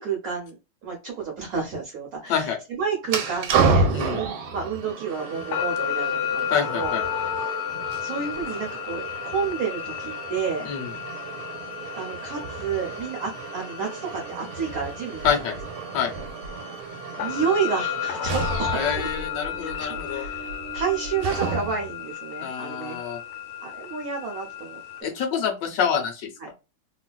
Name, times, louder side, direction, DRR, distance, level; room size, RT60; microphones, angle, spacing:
voice 1, 0.0-7.0 8.0-10.7 11.9-15.2 17.2-19.1 19.6-20.5 20.7-23.0 23.6-25.1 26.4-26.5, right 6 dB, 60° right, 0 dB, 0.9 m, -30 dB
sound 1, 3.0-21.9, right 4 dB, 80° right, 1.4 m, -31 dB
sound 2, 5.1-25.0, left 9 dB, 90° left, 1.5 m, -33 dB
voice 2, 6.5-7.0 10.6-10.9 15.2-15.5 15.9-16.1 18.7-20.2 22.4-23.2 25.0-26.3, left 7 dB, 70° left, 4 dB, 1.3 m, -26 dB
3.2 x 2.4 x 2.2 m, 0.28 s
omnidirectional pair, 2.3 m